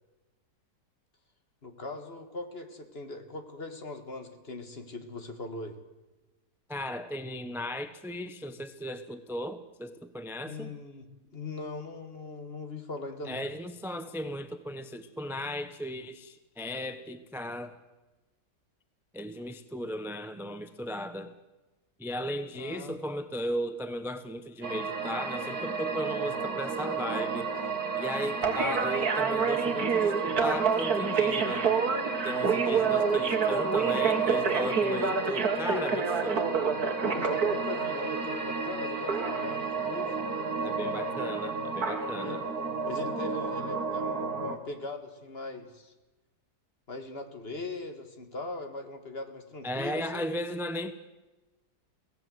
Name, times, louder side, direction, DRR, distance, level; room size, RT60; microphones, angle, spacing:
voice 1, 1.6-5.8 10.5-13.4 22.6-23.0 32.9-33.2 37.1-40.2 42.1-42.4 42.9-45.9 46.9-50.3, left 2 dB, 35° left, 7 dB, 2.0 m, -40 dB
voice 2, 6.7-10.7 13.3-17.8 19.1-21.3 22.0-27.5 27.9-31.7 32.2-36.5 40.6-42.5 49.6-50.9, equal, ahead, 10 dB, 0.6 m, -36 dB
sound 1, 24.6-44.6, right 5 dB, 60° right, 2.4 m, -29 dB
23.0 x 17.0 x 7.8 m, 1.1 s
omnidirectional pair, 1.8 m